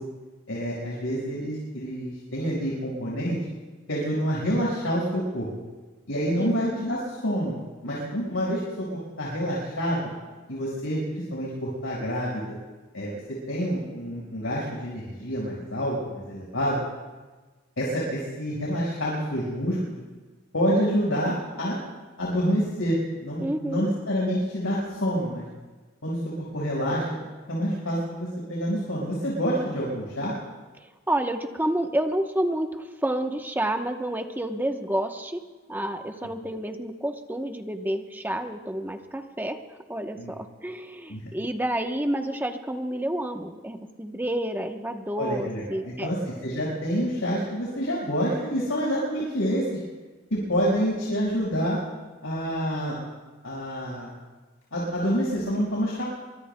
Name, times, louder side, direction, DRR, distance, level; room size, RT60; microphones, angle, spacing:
voice 1, 0.5-3.4 3.9-5.5 6.1-7.6 7.8-8.9 9.2-10.1 10.5-12.5 12.9-13.2 13.5-16.8 17.8-19.9 20.5-21.8 22.2-25.4 26.0-30.3 40.2-40.3 41.1-41.2 45.2-49.8 50.3-51.8 52.2-53.0 53.4-54.1 54.7-56.1, equal, 90° left, -5 dB, 5.2 m, -27 dB
voice 2, 23.4-23.9 30.8-35.4 35.7-46.1 48.6-48.7 49.2-49.3, right 1 dB, 10° right, 4 dB, 0.9 m, -29 dB
26.0 x 24.5 x 2.2 m, 1.3 s
head